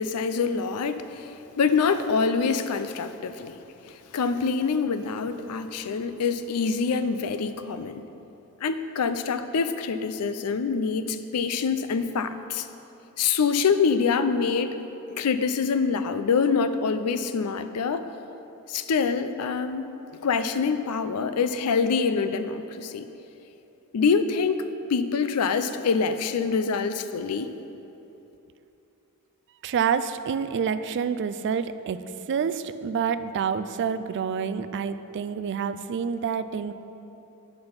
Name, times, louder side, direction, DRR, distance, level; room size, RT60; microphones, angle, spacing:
voice 1, 0.0-3.6 3.9-8.0 8.6-12.7 13.2-14.8 15.1-18.0 18.7-19.9 20.2-23.1 23.9-27.5, left 5 dB, 80° left, 10 dB, 0.5 m, -25 dB
voice 2, 29.6-36.7, right 6 dB, 55° right, 12 dB, 0.3 m, -28 dB
8.8 x 5.9 x 5.2 m, 3.0 s
head